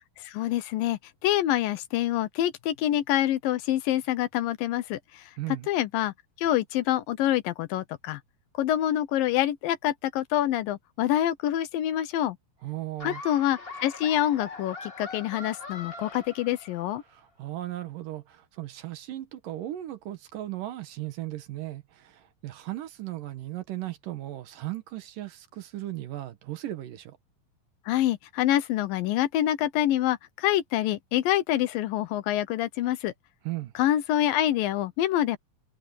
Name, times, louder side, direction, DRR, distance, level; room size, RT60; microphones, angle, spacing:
voice 1, 0.2-5.3 5.7-8.2 8.6-12.4 13.0-17.0 27.9-33.1 33.8-35.4, left 12 dB, 75° left, 2.5 m, -26 dB
voice 2, 5.4-5.7 12.6-13.2 17.1-27.2 33.4-33.7, right 15 dB, 70° right, 2.7 m, -36 dB
Laughter, 13.0-17.0, left 3 dB, 35° left, 0.9 m, -41 dB
omnidirectional pair, 4.3 m